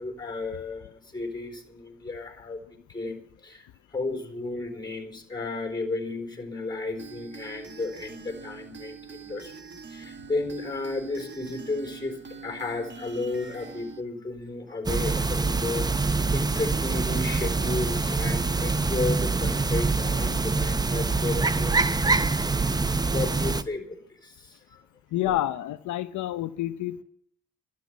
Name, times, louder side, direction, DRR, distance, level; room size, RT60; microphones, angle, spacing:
voice 1, 0.0-9.5 9.9-22.8 23.1-24.8 25.2-25.4, left 3 dB, 15° left, 4 dB, 4.2 m, -34 dB
sound 1, 7.0-14.0, right 6 dB, 40° right, 1.7 m, -44 dB
sound 2, 14.9-23.6, right 3 dB, 15° right, 0.6 m, -25 dB
voice 2, 25.1-27.0, left 13 dB, 75° left, 10 dB, 0.7 m, -28 dB
12.0 x 8.4 x 9.3 m, 0.69 s
cardioid pair, 90°, 30 cm